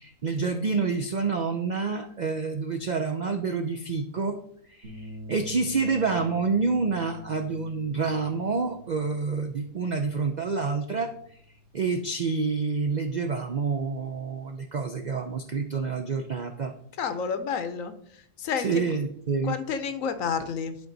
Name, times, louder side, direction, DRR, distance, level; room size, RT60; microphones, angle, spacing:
voice 1, 0.0-4.4 4.7-11.1 11.7-16.7 18.6-19.6, right 4 dB, 60° right, 6 dB, 0.4 m, -28 dB
sound 1, 4.8-13.3, left 1 dB, 45° right, 1.7 m, -47 dB
voice 2, 17.0-17.9 18.4-18.7 19.4-20.8, left 6 dB, 70° left, 10 dB, 1.1 m, -29 dB
10.5 x 4.5 x 3.9 m, 0.66 s
omnidirectional pair, 1.5 m